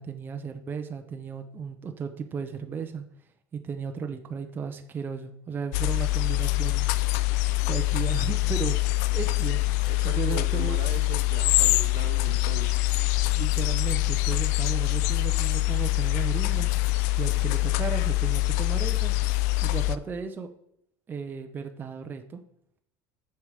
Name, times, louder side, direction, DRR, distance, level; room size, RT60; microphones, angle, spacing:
voice 1, 0.0-3.0 3.5-6.9 7.6-8.8 9.1-9.6 10.0-10.8 13.3-16.7 17.2-19.1 19.6-20.5 21.1-22.4, right 6 dB, 20° right, 5 dB, 0.6 m, -35 dB
sound 1, 5.7-20.0, left 19 dB, 90° left, 0.4 m, -25 dB
voice 2, 9.9-12.9, right 10 dB, 60° right, 9 dB, 0.8 m, -39 dB
6.7 x 6.5 x 4.9 m, 0.71 s
cardioid pair, 145°, 9 cm